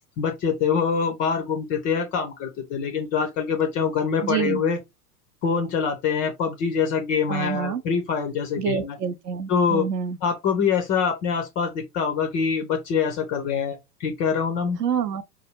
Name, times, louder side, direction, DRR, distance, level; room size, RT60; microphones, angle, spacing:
voice 1, 0.2-4.8 5.4-8.9 9.5-9.9 10.2-14.8, left 6 dB, 20° left, 0.3 m, -24 dB
voice 2, 4.2-4.6 7.3-7.8 8.6-10.2 14.8-15.2, right 7 dB, 70° right, 0.7 m, -27 dB
4.7 x 2.3 x 3.0 m
figure-of-eight pair, 85°, 49 cm